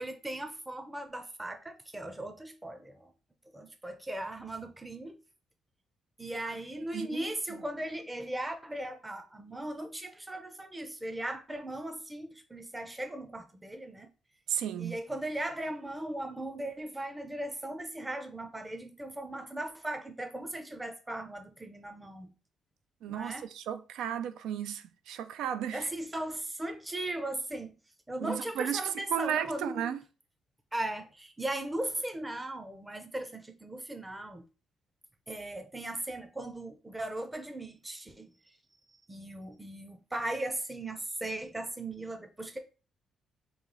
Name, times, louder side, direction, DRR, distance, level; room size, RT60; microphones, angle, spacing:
voice 1, 0.0-3.1 3.5-5.2 6.2-14.1 14.8-22.3 23.1-23.5 25.7-27.7 28.1-29.9 30.7-34.4 35.3-38.3 39.1-42.6, right 1 dB, 15° right, 0.6 m, -38 dB
voice 2, 6.8-7.2 14.5-15.0 23.0-25.9 28.2-30.0, right 9 dB, 85° right, 0.4 m, -34 dB
3.1 x 2.8 x 3.9 m
cardioid pair, 90°, 0 cm